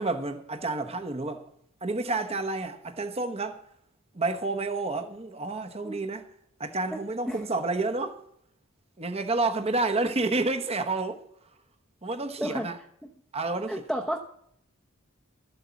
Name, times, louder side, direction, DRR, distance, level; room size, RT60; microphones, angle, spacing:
voice 1, 0.0-1.5 1.8-3.6 4.1-6.3 6.6-8.2 9.0-11.2 12.0-12.8 13.3-13.8, right 3 dB, 30° right, 1.1 m, -29 dB
voice 2, 13.7-14.2, equal, ahead, 0.9 m, -31 dB
13.5 x 8.0 x 7.1 m
head